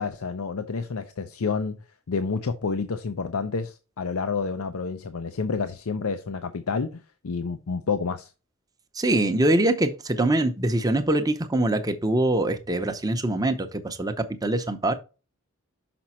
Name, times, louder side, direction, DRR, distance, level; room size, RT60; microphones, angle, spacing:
voice 1, 0.0-1.7 2.1-8.3, left 5 dB, 85° left, 0.6 m, -29 dB
voice 2, 8.9-14.9, right 1 dB, 15° right, 0.7 m, -23 dB
6.0 x 5.0 x 4.3 m
head